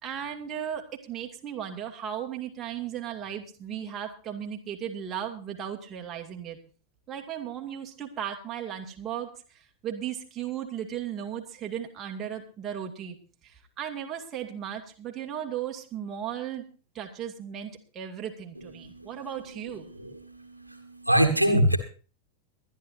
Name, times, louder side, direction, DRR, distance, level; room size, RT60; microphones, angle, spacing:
voice 1, 0.0-6.6 7.1-9.3 9.8-13.2 13.8-16.6 16.9-19.9, right 9 dB, 25° right, 2 dB, 2.4 m, -36 dB
voice 2, 20.6-21.8, right 1 dB, 85° right, 5 dB, 1.7 m, -23 dB
23.5 x 11.0 x 2.7 m, 0.37 s
figure-of-eight pair, 90°, 0 cm